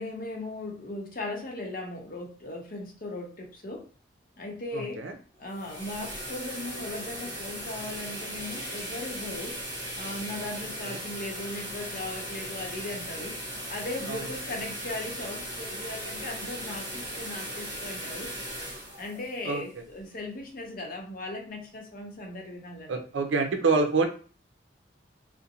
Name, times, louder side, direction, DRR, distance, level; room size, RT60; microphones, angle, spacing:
voice 1, 0.0-3.9 4.4-5.0 5.4-9.6 10.0-13.4 13.7-18.3 19.0-23.0, left 2 dB, 50° left, 0 dB, 0.7 m, -38 dB
voice 2, 4.7-5.1 10.8-11.0 14.1-14.2 19.4-19.6 22.9-24.1, right 4 dB, 80° right, 5 dB, 0.5 m, -26 dB
sound 1, 5.3-20.3, right 1 dB, 60° right, 1.1 m, -38 dB
2.5 x 2.1 x 2.8 m, 0.39 s
head